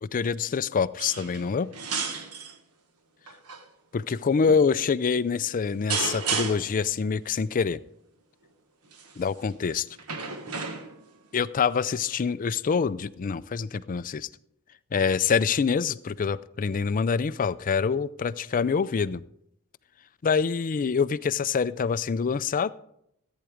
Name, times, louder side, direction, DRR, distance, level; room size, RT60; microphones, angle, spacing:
voice 1, 0.0-1.7 3.9-7.8 9.2-9.9 11.3-14.3 14.9-19.2 20.2-22.7, left 6 dB, 35° left, 16 dB, 0.4 m, -26 dB
sound 1, 1.0-1.5 1.7-2.6 3.3-3.6 4.5-4.7 5.9-6.8 8.9-9.2 10.0-11.1 12.2-12.3, right 5 dB, 80° right, 1.4 m, -32 dB
14.0 x 9.0 x 5.0 m, 0.76 s
head